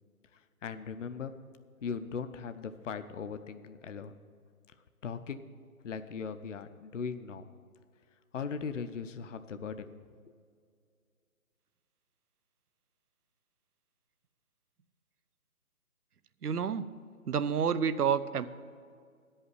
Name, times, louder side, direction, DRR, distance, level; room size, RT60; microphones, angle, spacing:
voice 1, 0.3-1.3 1.8-4.1 5.0-5.4 5.8-7.4 8.3-9.9 10.3-10.4, left 6 dB, 55° left, 10 dB, 0.6 m, -39 dB
voice 2, 16.4-16.8 17.3-18.5, right 7 dB, 85° right, 14 dB, 0.7 m, -29 dB
10.0 x 5.6 x 8.1 m, 2.1 s
hypercardioid pair, 170°, 44 cm